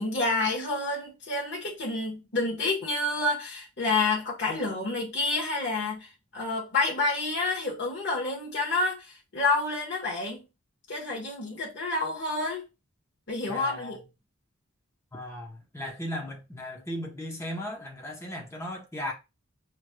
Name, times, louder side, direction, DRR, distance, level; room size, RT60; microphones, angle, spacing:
voice 1, 0.0-10.5 10.9-12.6 13.3-14.0, left 3 dB, 55° left, 1.2 m, -29 dB
voice 2, 13.5-14.0 15.1-19.1, left 1 dB, 15° left, 0.8 m, -36 dB
5.1 x 3.1 x 2.2 m
head